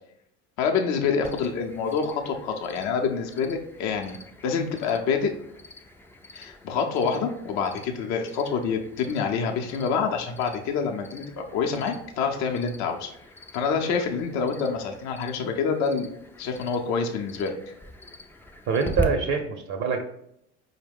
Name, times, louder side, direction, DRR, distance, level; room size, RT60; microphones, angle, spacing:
voice 1, 0.6-5.3 6.3-13.1 13.5-16.1 16.4-17.6, left 5 dB, 55° left, 3 dB, 0.6 m, -27 dB
Cricket, 1.2-19.0, left 1 dB, 5° left, 0.3 m, -42 dB
voice 2, 18.7-20.0, right 5 dB, 55° right, 4 dB, 0.6 m, -25 dB
4.6 x 2.1 x 3.4 m, 0.74 s
hypercardioid pair, 70°, 34 cm